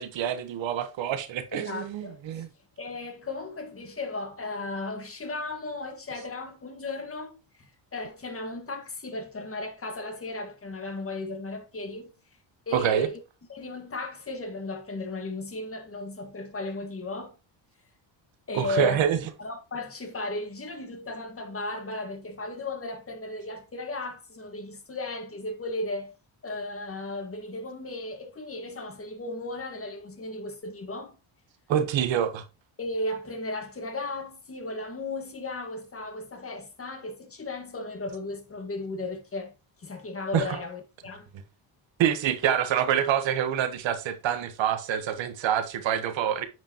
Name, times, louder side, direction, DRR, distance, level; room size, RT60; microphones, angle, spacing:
voice 1, 0.0-2.5 12.7-13.1 18.5-19.2 31.7-32.4 40.3-40.6 42.0-46.5, right 9 dB, 70° right, 1.4 m, -26 dB
voice 2, 1.5-2.4 2.8-12.1 12.7-13.2 13.5-17.3 18.5-19.0 19.4-26.1 26.4-31.2 32.8-39.5 39.8-41.3, left 2 dB, 30° left, 1.8 m, -35 dB
9.2 x 5.0 x 3.0 m
cardioid pair, 95°, 47 cm